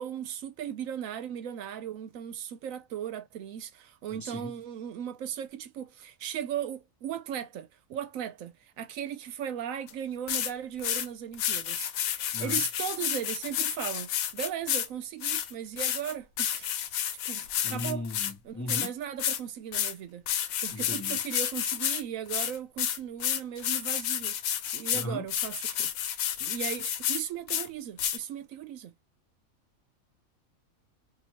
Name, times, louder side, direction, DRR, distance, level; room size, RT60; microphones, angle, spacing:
voice 1, 0.0-17.0 17.3-18.0 18.4-20.2 20.6-24.4 24.7-25.9 26.4-28.9, right 9 dB, 75° right, 1.0 m, -37 dB
voice 2, 4.1-4.5 12.3-12.6 17.6-18.9 20.7-21.2 24.9-25.3, left 2 dB, 15° left, 0.7 m, -37 dB
sound 1, 9.9-10.0 10.3-10.5 10.8-11.1 11.3-14.9 15.2-18.3 18.7-18.9 19.2-19.4 19.7-19.9 20.3-22.0 22.3-27.2 27.5-27.7 28.0-28.2, left 10 dB, 85° left, 1.0 m, -30 dB
2.9 x 2.6 x 2.8 m
omnidirectional pair, 1.4 m